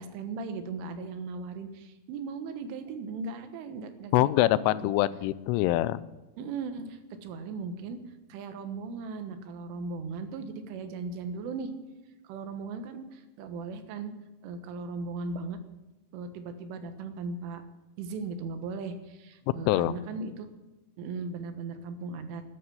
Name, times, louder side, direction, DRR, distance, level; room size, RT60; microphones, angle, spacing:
voice 1, 0.0-4.9 6.4-8.0 8.3-11.7 12.2-14.1 14.4-15.6 16.1-17.6 18.0-20.5 21.0-22.4, right 4 dB, 80° right, 8 dB, 3.8 m, -37 dB
voice 2, 4.1-6.0 19.7-19.9, left 15 dB, 85° left, 17 dB, 3.1 m, -24 dB
13.0 x 11.0 x 8.0 m, 1.1 s
omnidirectional pair, 5.6 m